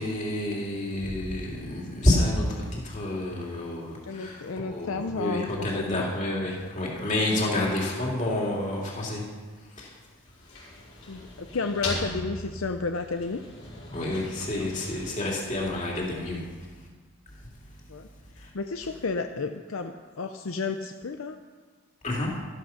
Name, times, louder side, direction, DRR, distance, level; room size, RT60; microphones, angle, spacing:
voice 1, 0.0-9.2 9.8-10.0 13.9-16.9 18.4-18.5 22.0-22.3, left 1 dB, 35° left, -3 dB, 3.0 m, -29 dB
voice 2, 4.0-5.7 5.9-6.1 7.5-7.7 11.1-13.4 14.4-14.7 17.9-18.1 18.4-21.4, left 4 dB, 70° left, 6 dB, 0.6 m, -32 dB
sound 1, 10.1-16.2, left 2 dB, 90° left, 5.4 m, -39 dB
13.0 x 12.0 x 5.9 m, 1.5 s
head